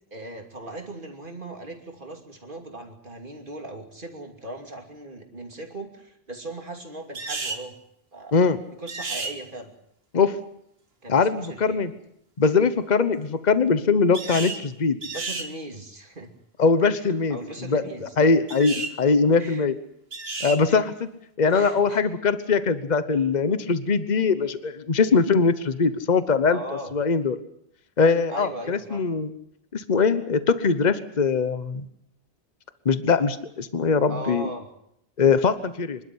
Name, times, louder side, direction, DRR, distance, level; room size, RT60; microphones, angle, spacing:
voice 1, 0.1-7.7 8.1-8.4 8.8-9.7 11.0-11.8 15.1-16.3 17.3-18.3 19.4-19.7 20.7-20.8 21.5-22.0 23.1-23.3 26.5-26.9 28.3-29.1 34.1-34.7, right 2 dB, 55° right, 3 dB, 3.0 m, -38 dB
sound 1, 7.1-7.6 8.9-9.4 14.1-14.6 15.0-15.5 18.5-18.9 20.1-20.6, right 3 dB, 75° right, 2.0 m, -32 dB
voice 2, 11.1-11.9 12.4-15.0 16.6-17.4 17.7-17.8 18.2-19.7 20.4-21.1 21.4-26.6 26.9-27.4 28.0-29.3 29.7-31.9 32.8-34.5 35.2-36.0, left 5 dB, 45° left, 12 dB, 1.2 m, -21 dB
26.0 x 12.5 x 9.7 m, 0.76 s
omnidirectional pair, 1.0 m